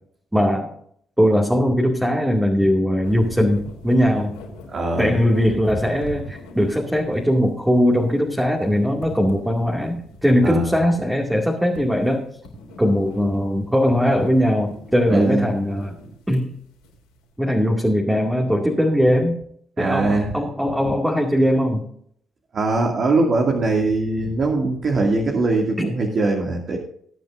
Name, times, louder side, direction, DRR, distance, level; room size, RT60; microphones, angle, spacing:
voice 1, 0.3-0.7 1.2-4.3 5.0-12.3 12.8-15.9 16.3-16.5 17.4-19.4 19.8-21.8, equal, 10° right, 0 dB, 2.3 m, -20 dB
sound 1, 3.0-17.3, left 1 dB, 80° left, 3.9 m, -42 dB
voice 2, 4.7-5.2 10.4-10.8 15.1-15.6 19.8-20.4 22.5-26.8, right 2 dB, 50° right, 1 dB, 2.4 m, -21 dB
20.0 x 9.3 x 2.6 m, 0.65 s
hypercardioid pair, 50°, 0 cm